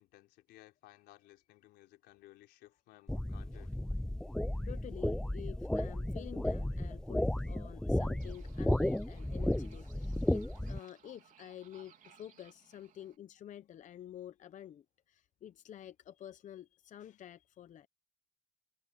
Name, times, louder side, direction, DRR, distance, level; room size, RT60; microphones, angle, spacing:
voice 1, 0.0-3.7 8.9-9.0 11.8-11.9, left 16 dB, 85° left, 4.0 m, -59 dB
sound 1, 3.1-10.8, left 1 dB, 5° left, 0.4 m, -34 dB
voice 2, 4.7-17.9, left 11 dB, 45° left, 0.7 m, -50 dB
sound 2, 8.2-13.2, right 8 dB, 50° right, 3.5 m, -63 dB
cardioid pair, 110°, 17 cm